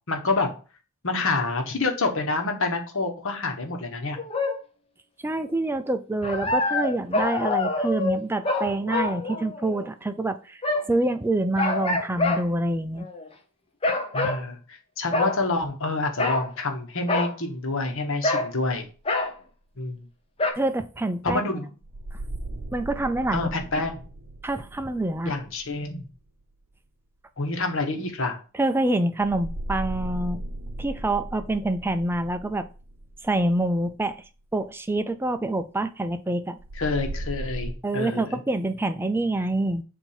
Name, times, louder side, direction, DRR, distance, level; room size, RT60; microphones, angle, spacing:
voice 1, 0.1-0.5 1.0-4.2 14.1-18.9 19.8-20.0 21.2-21.7 23.3-24.0 25.2-26.0 27.4-28.4 36.8-38.2, left 3 dB, 60° left, 4 dB, 1.3 m, -27 dB
sound 1, 4.2-4.6 6.2-9.9 10.6-11.0 11.6-12.4 13.0-13.3 13.8-14.4 15.1-15.4 16.2-16.5 17.1-17.3 18.2-18.5 19.1-19.3 20.4-20.5, left 3 dB, 25° left, 0.8 m, -26 dB
voice 2, 5.2-10.6 10.9-13.1 20.5-21.4 22.1-22.2 22.7-23.5 24.4-25.3 28.5-30.4 30.8-32.7 33.2-34.2 34.5-36.6 37.8-39.8, right 2 dB, 10° right, 10 dB, 0.4 m, -26 dB
sound 2, 21.8-26.6 29.2-34.3 36.6-37.7, right 1 dB, 75° right, 0.7 m, -37 dB
7.1 x 2.7 x 5.6 m, 0.36 s
head